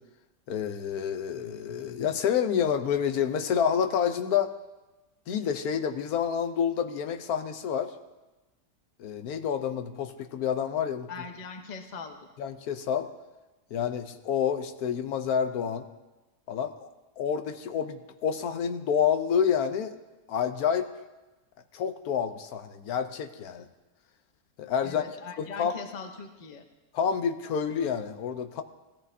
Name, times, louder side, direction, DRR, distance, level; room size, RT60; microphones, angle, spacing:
voice 1, 0.5-4.5 5.3-7.9 9.0-11.1 12.4-13.1 13.7-15.9 16.5-16.9 17.2-19.9 20.3-20.9 21.7-23.7 24.6-25.7 26.9-28.6, left 8 dB, 85° left, 8 dB, 1.2 m, -28 dB
voice 2, 11.1-12.3 24.8-26.6, left 5 dB, 35° left, 5 dB, 0.9 m, -41 dB
17.0 x 13.5 x 2.7 m, 1.1 s
omnidirectional pair, 1.5 m